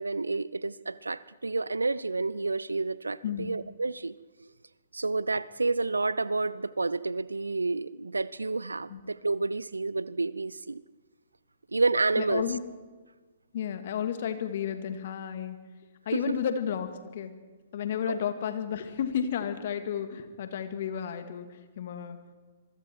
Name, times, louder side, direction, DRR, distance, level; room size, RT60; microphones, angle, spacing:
voice 1, 0.0-4.5 4.9-10.8 11.7-12.4 16.1-16.2 18.1-18.2, right 3 dB, 80° right, 19 dB, 0.5 m, -30 dB
voice 2, 12.2-12.6 13.5-15.6 16.1-17.3 17.7-22.2, left 8 dB, 50° left, 9 dB, 2.2 m, -32 dB
26.0 x 23.5 x 4.7 m, 1.3 s
figure-of-eight pair, 120°, 0 cm